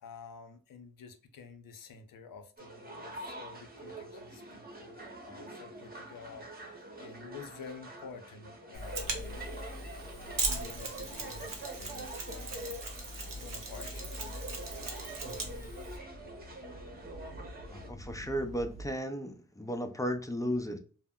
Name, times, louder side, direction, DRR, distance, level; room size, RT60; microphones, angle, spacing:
voice 1, 0.0-9.5 10.2-12.8 13.3-14.8, left 5 dB, 85° left, 0.5 m, -50 dB
sound 1, 2.6-17.9, right 2 dB, 30° right, 0.9 m, -45 dB
Mechanisms, 8.7-16.0, right 3 dB, 75° right, 0.9 m, -39 dB
sound 2, 9.4-18.9, equal, 50° left, 0.7 m, -51 dB
voice 2, 17.7-20.8, equal, 10° left, 0.5 m, -34 dB
2.1 x 2.1 x 3.6 m
cardioid pair, 40°, 32 cm